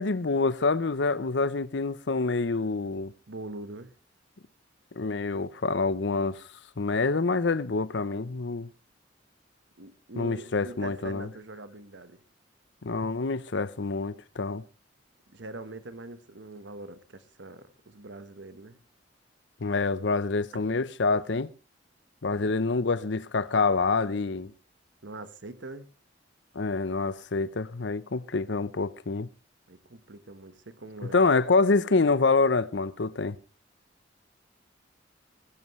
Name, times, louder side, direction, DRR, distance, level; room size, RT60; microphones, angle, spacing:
voice 1, 0.0-3.1 5.0-6.4 6.8-8.7 10.2-11.3 12.8-14.6 19.6-21.5 22.2-24.5 26.5-29.3 31.1-33.4, left 3 dB, 70° left, 0.7 m, -26 dB
voice 2, 3.3-3.9 9.8-12.2 15.3-18.8 22.3-22.6 25.0-25.9 29.7-31.2, right 2 dB, 75° right, 1.3 m, -43 dB
21.0 x 11.0 x 3.2 m
head